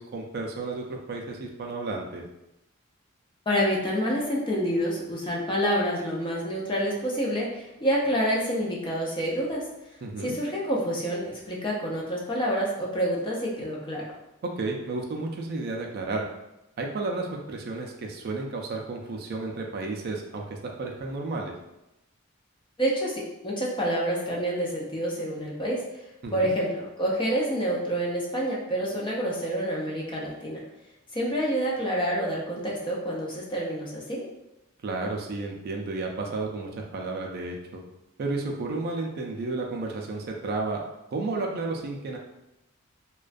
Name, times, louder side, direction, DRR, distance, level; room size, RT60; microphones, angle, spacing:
voice 1, 0.0-2.2 10.0-10.4 14.4-16.3 16.8-21.5 26.2-26.6 34.8-37.8 38.2-40.8 41.1-42.2, right 3 dB, 45° right, 1 dB, 0.3 m, -32 dB
voice 2, 3.5-9.6 10.2-14.0 22.8-25.8 26.3-30.6 31.1-34.2, equal, 25° left, -3 dB, 0.4 m, -28 dB
2.3 x 2.1 x 2.4 m, 0.91 s
head